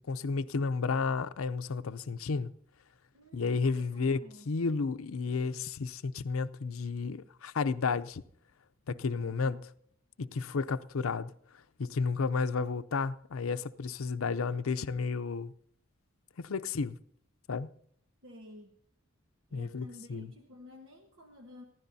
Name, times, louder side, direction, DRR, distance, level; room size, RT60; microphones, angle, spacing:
voice 1, 0.1-2.5 3.3-8.2 8.9-9.6 10.2-11.3 11.8-15.5 16.4-17.0 17.5-17.7 19.5-20.3, left 4 dB, 80° left, 0.6 m, -32 dB
voice 2, 3.1-4.5 9.2-9.7 18.2-18.7 19.5-21.6, left 1 dB, 65° right, 1.4 m, -51 dB
22.0 x 15.0 x 2.7 m
head